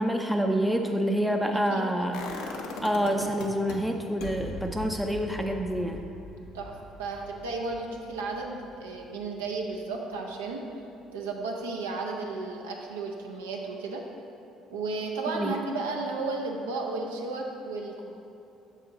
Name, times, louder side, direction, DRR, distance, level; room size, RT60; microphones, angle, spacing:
voice 1, 0.0-2.2 2.8-6.0 15.3-15.5, equal, ahead, 3 dB, 0.4 m, -27 dB
voice 2, 1.5-2.1 6.5-10.6 11.1-14.0 14.7-18.1, right 3 dB, 85° right, 1 dB, 0.6 m, -34 dB
sound 1, 2.1-3.8 4.2-10.0 10.4-10.5, left 3 dB, 75° left, 0.6 m, -41 dB
6.5 x 5.0 x 3.9 m, 2.7 s
hypercardioid pair, 55°, 0 cm